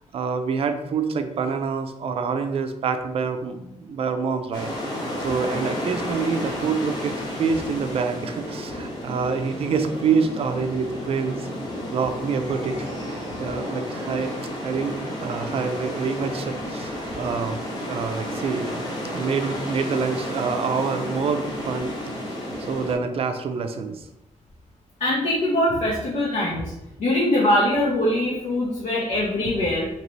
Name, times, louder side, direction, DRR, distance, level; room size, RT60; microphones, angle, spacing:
voice 1, 0.1-4.7 5.2-11.5 11.9-14.3 14.6-14.9 15.2-18.8 19.1-21.9 22.6-24.1, right 5 dB, 50° right, 7 dB, 0.4 m, -26 dB
sound 1, 4.5-22.9, equal, 35° left, 0.9 m, -32 dB
voice 2, 25.0-26.6 27.0-29.9, left 1 dB, 75° left, -6 dB, 0.9 m, -22 dB
3.9 x 2.9 x 3.1 m, 0.90 s
wide cardioid pair, 175°, 13 cm